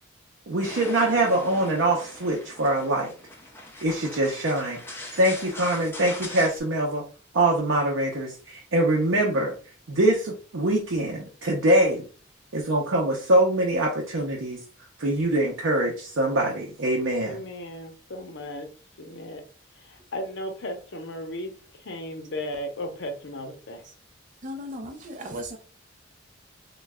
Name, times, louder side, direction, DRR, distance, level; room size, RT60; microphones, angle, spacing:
voice 1, 0.5-3.1 3.8-4.8 5.2-7.0 7.3-9.5 9.9-12.0 12.5-14.6 15.0-17.4, right 1 dB, 80° right, 0.6 m, -23 dB
sound 1, 0.6-6.6, left 2 dB, 10° left, 0.5 m, -41 dB
voice 2, 17.2-18.7 19.0-19.4 19.8-23.8, left 1 dB, 60° left, 0.7 m, -36 dB
voice 3, 24.4-25.6, equal, 40° right, 0.5 m, -36 dB
3.1 x 2.2 x 3.5 m
head